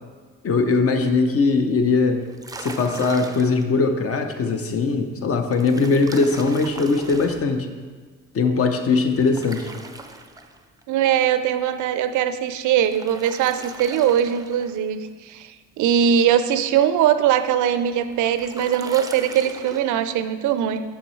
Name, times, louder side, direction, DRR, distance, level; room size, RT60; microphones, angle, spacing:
voice 1, 0.4-2.2 2.6-7.7 8.3-9.7, left 4 dB, 50° left, 7 dB, 0.7 m, -20 dB
sound 1, 2.2-3.7 5.5-7.5 9.1-10.8 12.6-14.8 17.7-19.8, right 3 dB, 10° right, 0.4 m, -39 dB
voice 2, 10.9-20.8, right 9 dB, 80° right, 11 dB, 0.4 m, -21 dB
6.9 x 5.6 x 3.1 m, 1.5 s
cardioid pair, 90°, 30 cm